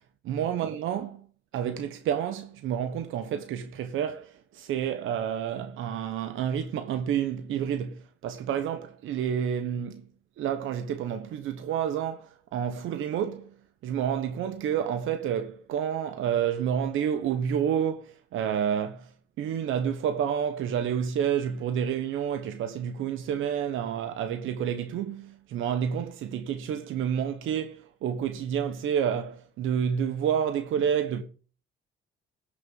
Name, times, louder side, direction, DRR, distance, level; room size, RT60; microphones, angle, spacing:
voice 1, 0.3-1.3 1.5-10.0 10.4-13.5 13.8-19.1 19.4-31.2, right 8 dB, 85° right, 1.1 m, -29 dB
16.5 x 6.7 x 5.5 m
cardioid pair, 90°, 20 cm